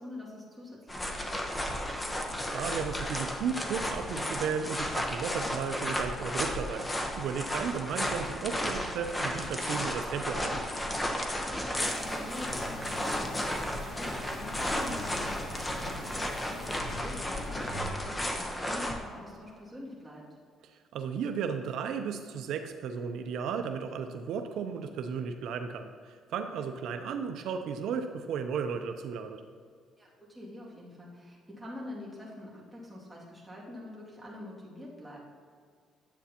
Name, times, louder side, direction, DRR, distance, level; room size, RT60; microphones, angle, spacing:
voice 1, 0.0-1.7 11.4-16.3 16.9-20.3 26.5-26.6 30.0-35.2, left 1 dB, 5° right, -6 dB, 2.3 m, -45 dB
sound 1, 0.9-19.0, equal, 15° left, 1.0 m, -33 dB
voice 2, 2.2-6.9 7.2-10.6 20.7-29.4, right 6 dB, 75° right, 6 dB, 0.5 m, -34 dB
sound 2, 11.8-16.8, right 5 dB, 55° right, 2.0 m, -55 dB
sound 3, 12.4-17.9, left 2 dB, 70° left, 0.9 m, -44 dB
10.5 x 8.2 x 2.9 m, 2.1 s
cardioid pair, 120°, 0 cm